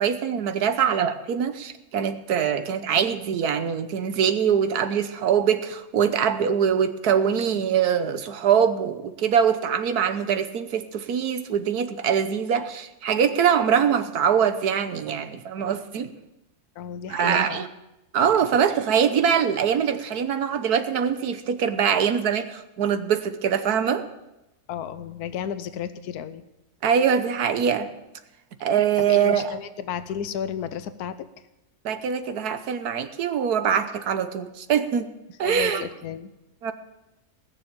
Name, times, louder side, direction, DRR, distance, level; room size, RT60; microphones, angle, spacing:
voice 1, 0.0-16.1 17.1-17.7 18.1-24.1 26.8-27.9 28.6-29.5 31.8-35.1 35.4-35.8 36.6-36.7, right 8 dB, 75° right, 10 dB, 1.4 m, -23 dB
voice 2, 16.8-17.6 24.7-26.4 29.0-31.3 35.4-36.3, left 9 dB, 80° left, 12 dB, 1.3 m, -33 dB
19.0 x 7.1 x 8.9 m, 0.96 s
omnidirectional pair, 1.7 m